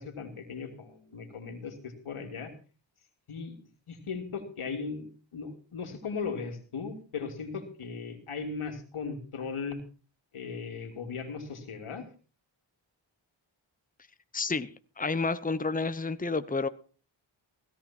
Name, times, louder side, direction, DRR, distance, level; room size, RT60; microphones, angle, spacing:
voice 1, 0.0-2.5 3.3-3.6 3.9-9.8 10.3-12.1, left 5 dB, 90° left, 2.9 m, -37 dB
voice 2, 14.3-14.7 15.0-16.7, left 4 dB, 15° left, 1.0 m, -30 dB
17.0 x 13.5 x 4.4 m
cardioid pair, 50°, 49 cm